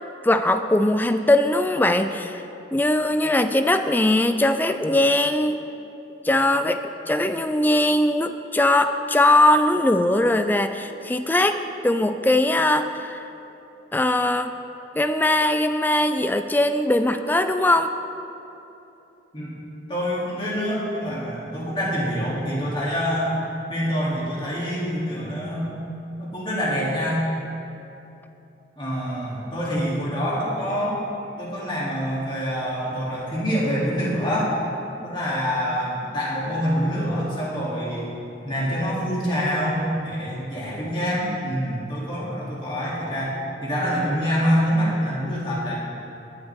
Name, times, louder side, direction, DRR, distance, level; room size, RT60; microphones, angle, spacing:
voice 1, 0.2-2.4 2.7-5.6 6.2-6.8 7.1-13.3 13.9-14.5 15.0-17.9, left 1 dB, 10° left, 9 dB, 0.3 m, -20 dB
voice 2, 19.9-23.3 23.7-25.8 26.2-27.2 28.8-31.0 31.4-34.5 35.0-38.1 38.4-43.3 43.6-45.8, equal, 25° left, -7 dB, 2.8 m, -26 dB
18.5 x 9.1 x 3.6 m, 3.0 s
head